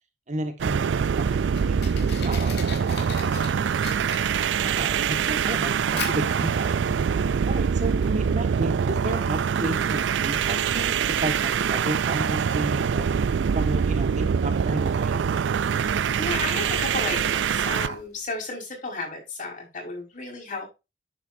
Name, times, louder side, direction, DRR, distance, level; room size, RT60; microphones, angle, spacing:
voice 1, 0.3-3.3 4.6-6.8 7.5-13.1 13.5-15.2, right 1 dB, 40° right, 7 dB, 1.5 m, -33 dB
sound 1, 0.6-18.0, right 7 dB, 90° right, 0.4 m, -24 dB
Fire, 0.7-18.4, left 5 dB, 65° left, 3.4 m, -43 dB
voice 2, 15.8-20.7, left 3 dB, 45° left, 0 dB, 5.1 m, -33 dB
10.0 x 7.7 x 2.6 m, 0.25 s
head